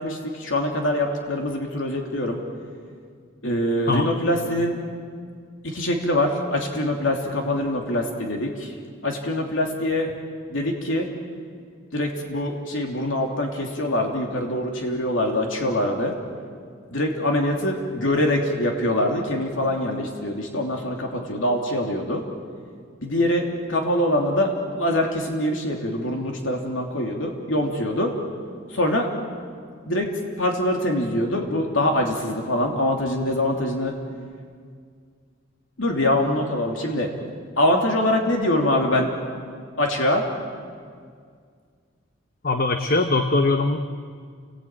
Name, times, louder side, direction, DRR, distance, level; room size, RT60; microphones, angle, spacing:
voice 1, 0.0-2.4 3.4-4.8 5.6-8.7 9.0-10.1 10.5-11.1 11.9-16.1 16.9-22.2 23.0-28.1 28.7-29.1 29.9-30.1 30.4-33.9 35.8-37.1 37.6-39.1 39.8-40.2, left 1 dB, 75° left, 1 dB, 3.1 m, -24 dB
voice 2, 42.4-43.8, left 3 dB, 45° left, 6 dB, 1.1 m, -21 dB
30.0 x 20.5 x 9.1 m, 2.1 s
head